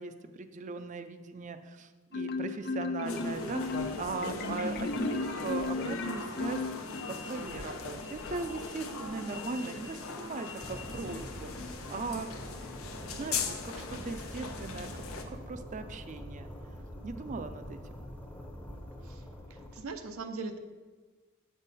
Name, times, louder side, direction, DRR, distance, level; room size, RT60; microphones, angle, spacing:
voice 1, 0.0-3.7 4.0-11.5 11.9-12.3 13.1-16.5 17.0-18.0, right 3 dB, 35° right, 9 dB, 0.4 m, -39 dB
Marimba xylophone, 2.1-7.3, left 3 dB, 50° left, 0.4 m, -34 dB
sound 1, 3.0-15.2, left 4 dB, 90° left, 0.7 m, -40 dB
sound 2, 10.6-19.8, equal, 5° left, 0.6 m, -45 dB
voice 2, 19.5-20.6, right 3 dB, 90° right, 7 dB, 0.6 m, -40 dB
7.1 x 5.5 x 4.1 m, 1.3 s
head